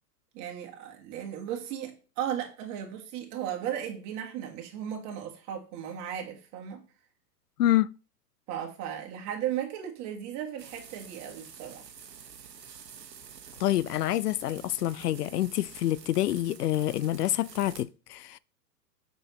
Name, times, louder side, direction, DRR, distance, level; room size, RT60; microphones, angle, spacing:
voice 1, 0.3-6.8 8.5-11.9, right 10 dB, 35° right, 1.6 m, -36 dB
sound 1, 10.6-17.8, right 7 dB, 80° right, 1.0 m, -49 dB
voice 2, 13.6-18.4, left 13 dB, 70° left, 0.6 m, -27 dB
7.3 x 5.3 x 3.1 m
figure-of-eight pair, 105°, 49 cm